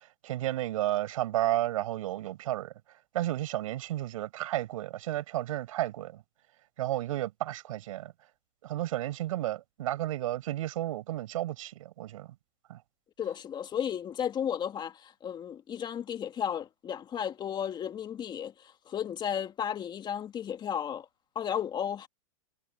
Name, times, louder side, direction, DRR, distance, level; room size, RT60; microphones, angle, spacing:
voice 1, 0.0-2.7 3.1-6.2 6.8-8.1 8.6-12.3 12.7-12.8, right 14 dB, 70° right, 5.2 m, -32 dB
voice 2, 13.2-18.5 18.9-21.1 21.4-22.1, left 9 dB, 25° left, 2.2 m, -34 dB
hypercardioid pair, 125°, 18 cm